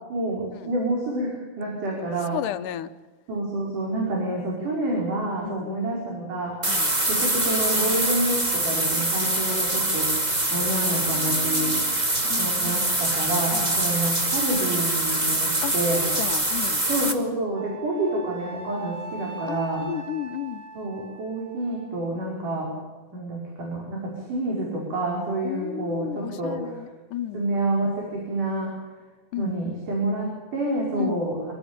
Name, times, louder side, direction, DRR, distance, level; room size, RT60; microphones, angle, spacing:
voice 1, 0.1-2.4 3.3-6.7 7.0-11.8 12.4-16.1 16.9-19.9 20.7-22.7 23.1-26.8 27.3-28.7 29.4-31.5, right 2 dB, 80° right, -2 dB, 6.6 m, -28 dB
voice 2, 2.3-2.9 5.5-5.7 6.7-6.9 10.5-10.7 11.1-12.9 13.5-13.7 15.6-16.8 19.5-20.7 25.4-27.4 29.3-29.8 31.0-31.3, left 12 dB, 85° left, 12 dB, 2.5 m, -34 dB
sound 1, 6.6-17.1, right 1 dB, 15° right, 2.0 m, -24 dB
Wind instrument woodwind instrument, 17.5-21.9, right 4 dB, 50° right, 5.7 m, -40 dB
25.5 x 17.0 x 8.8 m, 1.3 s
omnidirectional pair, 3.6 m